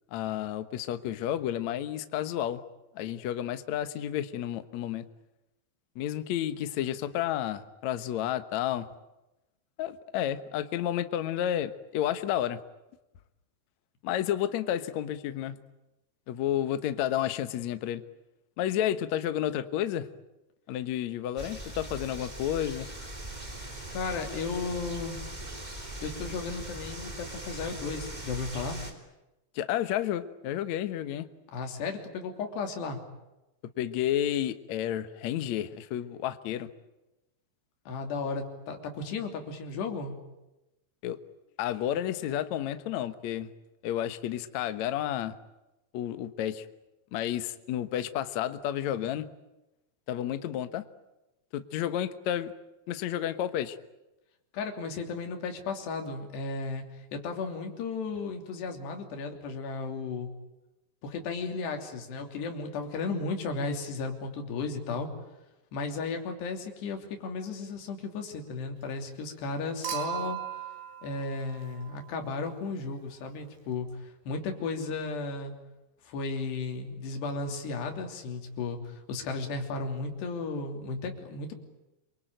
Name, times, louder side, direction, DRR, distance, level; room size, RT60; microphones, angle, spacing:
voice 1, 0.1-2.6 2.9-5.0 5.9-8.9 9.8-12.6 14.0-15.6 16.3-18.0 18.6-20.1 20.7-22.9 29.5-31.3 33.8-36.7 41.0-41.2 41.6-43.5 43.8-45.3 45.9-46.6 47.1-49.3 50.1-50.8 51.5-52.5 52.9-53.8, left 11 dB, 85° left, 11 dB, 1.6 m, -31 dB
sound 1, 21.4-28.9, right 1 dB, 10° right, 2.8 m, -40 dB
voice 2, 23.9-25.2 26.0-28.8 31.5-33.0 37.9-40.1 54.5-56.8 57.1-60.3 61.0-65.1 65.7-70.4 71.0-75.5 76.0-81.5, left 4 dB, 70° left, 4 dB, 5.1 m, -34 dB
Human group actions / Chink clink / Liquid, 69.8-72.2 73.7-73.8, right 12 dB, 85° right, 5.9 m, -38 dB
27.0 x 23.5 x 9.2 m, 0.96 s
omnidirectional pair, 5.1 m